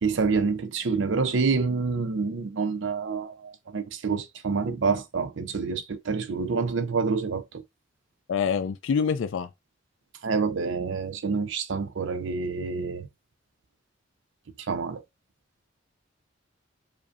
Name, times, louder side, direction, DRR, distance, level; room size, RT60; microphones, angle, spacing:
voice 1, 0.0-7.6 10.2-13.1 14.7-15.0, right 4 dB, 65° right, 0.5 m, -27 dB
voice 2, 8.3-9.5, left 6 dB, 70° left, 0.4 m, -26 dB
5.0 x 2.6 x 2.5 m
head